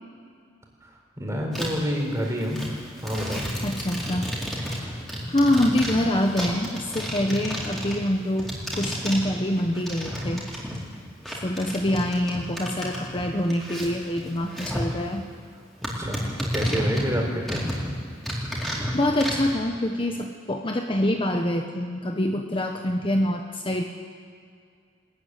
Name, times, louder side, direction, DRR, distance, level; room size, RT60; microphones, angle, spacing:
voice 1, 1.2-2.6 3.0-3.5 15.8-17.6, equal, 15° right, 0 dB, 4.3 m, -28 dB
sound 1, 1.5-1.9 2.2-11.0 11.3-14.9 15.3-15.4 15.8-17.9 18.2-19.5, equal, ahead, 4.4 m, -32 dB
voice 2, 3.6-4.3 4.6-5.0 5.3-10.5 11.4-15.2 18.9-23.8, left 1 dB, 30° left, 3 dB, 1.1 m, -25 dB
21.5 x 14.0 x 9.7 m, 2.2 s
head